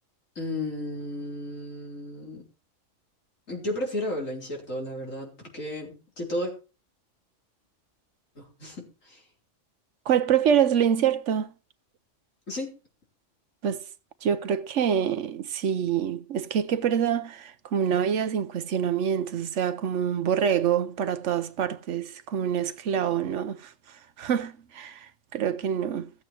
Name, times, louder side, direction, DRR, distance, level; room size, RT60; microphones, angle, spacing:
voice 1, 0.4-2.5 3.5-6.5 8.4-9.2 12.5-12.7, left 1 dB, 85° left, 4.3 m, -33 dB
voice 2, 10.1-11.5 13.6-13.8 14.2-26.1, right 8 dB, 70° right, 1.1 m, -26 dB
14.5 x 8.3 x 4.5 m
omnidirectional pair, 1.3 m